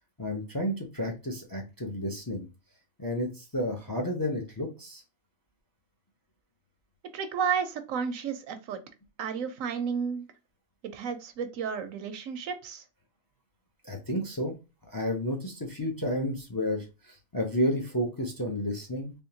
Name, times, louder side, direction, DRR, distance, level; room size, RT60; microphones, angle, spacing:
voice 1, 0.2-2.5 3.0-5.0 13.8-14.5 14.9-19.1, left 1 dB, 20° left, 2 dB, 0.6 m, -31 dB
voice 2, 7.1-8.8 9.2-10.2 10.9-12.8, right 6 dB, 80° right, 8 dB, 1.1 m, -32 dB
3.5 x 3.0 x 2.8 m, 0.28 s
omnidirectional pair, 1.4 m